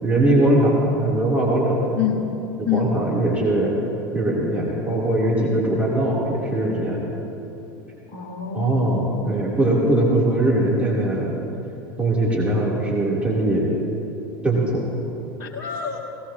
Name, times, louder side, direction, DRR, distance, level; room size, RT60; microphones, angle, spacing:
voice 1, 0.0-2.0 2.7-3.7 4.1-7.0 8.5-11.3 12.0-13.7 14.4-14.9, right 1 dB, 10° right, -6 dB, 3.6 m, -21 dB
voice 2, 8.1-9.5 15.4-16.0, left 9 dB, 55° left, -1 dB, 1.9 m, -27 dB
18.5 x 18.0 x 3.1 m, 2.9 s
figure-of-eight pair, 75°, 12 cm